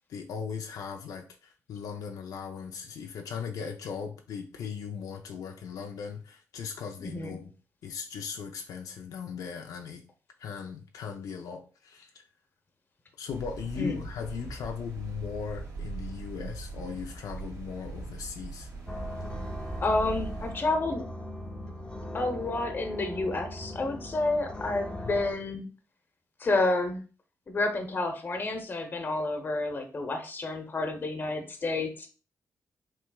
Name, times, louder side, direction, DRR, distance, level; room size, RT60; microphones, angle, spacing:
voice 1, 0.1-7.5 7.8-10.0 10.4-12.1 13.2-18.7 24.9-25.1, left 6 dB, 85° left, 3 dB, 0.6 m, -38 dB
sound 1, 13.3-20.5, right 4 dB, 70° right, 2.4 m, -41 dB
sound 2, 18.9-25.3, left 1 dB, 15° left, 0.7 m, -39 dB
voice 2, 19.8-21.1 22.1-25.7 26.4-27.0 27.5-32.1, left 2 dB, 35° left, 5 dB, 1.0 m, -30 dB
6.1 x 3.4 x 2.4 m, 0.35 s
cardioid pair, 120°, 6 cm